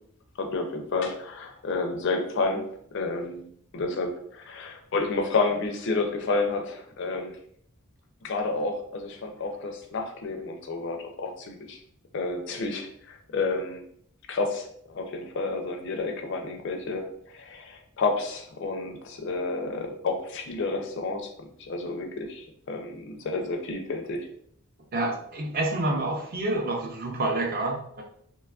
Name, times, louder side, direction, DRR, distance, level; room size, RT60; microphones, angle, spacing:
voice 1, 0.4-2.6 2.9-3.4 3.7-7.3 8.2-11.8 12.1-13.8 14.3-21.3 21.6-24.3, left 3 dB, 55° left, 4 dB, 0.4 m, -30 dB
voice 2, 24.9-28.0, right 2 dB, 40° right, 1 dB, 0.5 m, -28 dB
3.0 x 2.3 x 2.3 m, 0.65 s
head